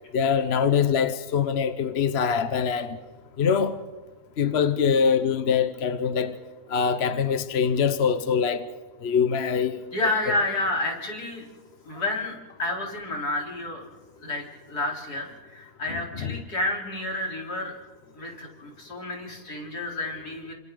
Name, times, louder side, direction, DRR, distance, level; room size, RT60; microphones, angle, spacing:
voice 1, 0.1-3.0 3.4-3.8 4.4-6.3 6.7-8.7 9.0-9.8 15.9-16.4, left 6 dB, 45° left, 1.1 m, -23 dB
voice 2, 9.9-11.5 11.8-13.8 14.2-17.8 18.1-20.5, left 2 dB, 75° left, 4.6 m, -30 dB
29.5 x 26.5 x 4.0 m
omnidirectional pair, 1.7 m